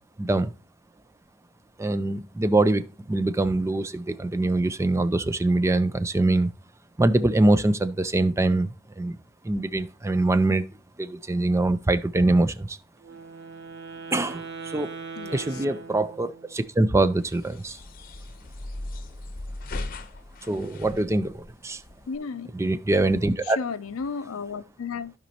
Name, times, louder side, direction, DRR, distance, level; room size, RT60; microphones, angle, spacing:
voice 1, 0.2-0.5 1.8-6.5 7.0-8.7 9.0-9.2 9.4-10.6 11.0-12.8 14.1-14.9 15.3-17.8 20.5-21.8 22.5-23.6, right 2 dB, 15° right, 0.4 m, -23 dB
Wind instrument woodwind instrument, 13.0-16.6, right 5 dB, 60° right, 1.1 m, -40 dB
voice 2, 15.2-15.7 22.1-22.5 23.4-25.1, left 5 dB, 80° left, 0.6 m, -34 dB
sound 1, 17.2-22.2, left 2 dB, 45° left, 0.8 m, -38 dB
15.0 x 5.2 x 2.9 m
head